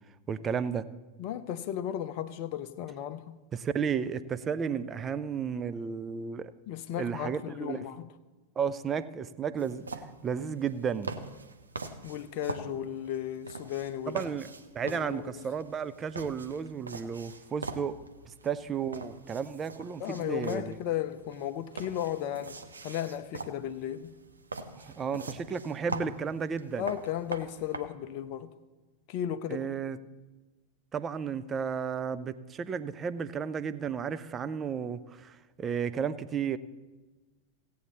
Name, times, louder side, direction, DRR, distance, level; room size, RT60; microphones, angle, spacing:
voice 1, 0.3-0.9 3.5-6.5 7.0-7.9 8.6-11.1 14.1-18.0 18.3-20.7 24.8-26.9 29.5-30.0 30.9-36.6, right 6 dB, 25° right, 0.5 m, -33 dB
voice 2, 1.2-3.4 6.7-8.1 12.0-14.2 14.8-15.4 20.0-22.6 22.8-24.2 26.8-28.5 29.1-29.7, left 10 dB, 45° left, 0.5 m, -35 dB
sound 1, 9.6-27.8, right 3 dB, 75° right, 0.8 m, -43 dB
16.5 x 8.5 x 4.1 m
figure-of-eight pair, 90°, 0 cm